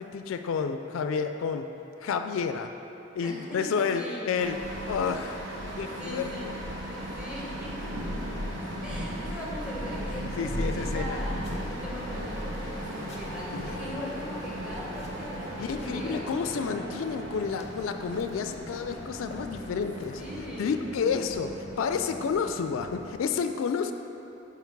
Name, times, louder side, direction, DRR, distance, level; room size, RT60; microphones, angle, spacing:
voice 1, 0.0-1.7 2.0-2.7 3.2-4.6 4.9-5.4 5.8-6.5 9.0-9.1 10.4-11.2 13.5-14.0 15.6-20.2 20.6-23.9, left 6 dB, 90° left, 7 dB, 0.3 m, -30 dB
voice 2, 3.2-4.6 5.9-6.5 6.9-7.8 8.8-11.3 11.7-16.3 20.2-20.8, left 1 dB, 5° right, -6 dB, 1.1 m, -40 dB
sound 1, 4.4-23.2, right 1 dB, 75° right, 1.0 m, -39 dB
Thunder / Rain, 7.3-15.9, equal, 30° right, 1.3 m, -37 dB
sound 2, 11.4-12.0 12.5-13.3 13.6-16.3 16.9-19.0 19.3-20.3, left 2 dB, 35° left, 0.6 m, -50 dB
5.8 x 4.5 x 4.6 m, 2.9 s
head